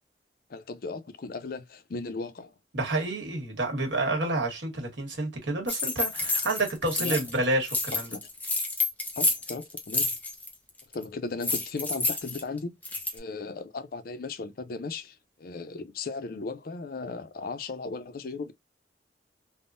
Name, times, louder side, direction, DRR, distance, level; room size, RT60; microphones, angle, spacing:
voice 1, 0.5-2.5 7.0-7.2 8.1-8.3 9.2-10.1 10.9-12.7 13.1-18.5, left 4 dB, 55° left, 0.4 m, -36 dB
voice 2, 2.7-8.1, right 2 dB, 90° right, 1.3 m, -29 dB
sound 1, 5.7-7.4 7.6-10.5 10.8-11.0 11.4-13.2, left 3 dB, 10° left, 0.6 m, -29 dB
3.5 x 2.1 x 2.4 m
head